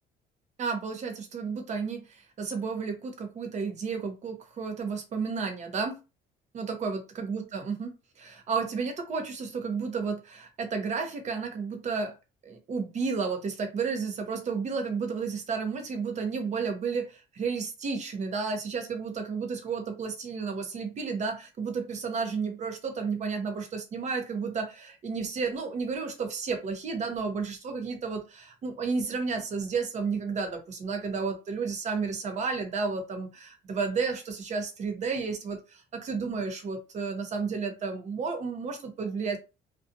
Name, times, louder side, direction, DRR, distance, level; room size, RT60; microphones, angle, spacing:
voice 1, 0.6-6.0 6.5-12.1 12.4-39.4, right 5 dB, 45° right, 0.7 m, -32 dB
2.5 x 2.3 x 2.6 m
cardioid pair, 110°, 17 cm